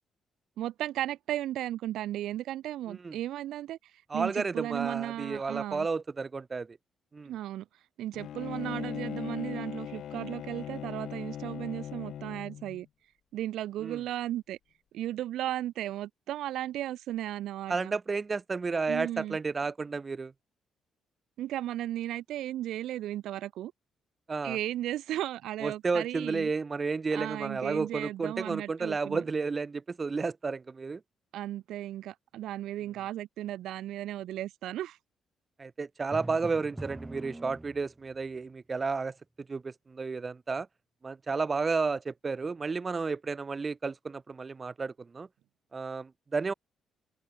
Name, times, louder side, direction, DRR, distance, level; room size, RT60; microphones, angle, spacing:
voice 1, 0.6-3.8 4.1-5.9 7.3-7.6 8.0-12.9 13.3-14.6 14.9-17.9 18.9-19.4 21.4-23.7 24.4-26.5 27.1-29.2 31.3-35.0, right 13 dB, 80° right, 3.5 m, -35 dB
voice 2, 4.1-6.8 7.1-7.3 13.8-14.0 17.7-20.3 24.3-24.6 25.6-31.0 35.6-39.1 39.5-40.7 41.0-45.3 45.7-46.5, right 4 dB, 30° right, 0.5 m, -32 dB
Bowed string instrument, 8.1-12.8, left 10 dB, 70° left, 1.3 m, -39 dB
Drum, 36.1-38.1, right 1 dB, 10° right, 1.4 m, -42 dB
cardioid pair, 90°, 0 cm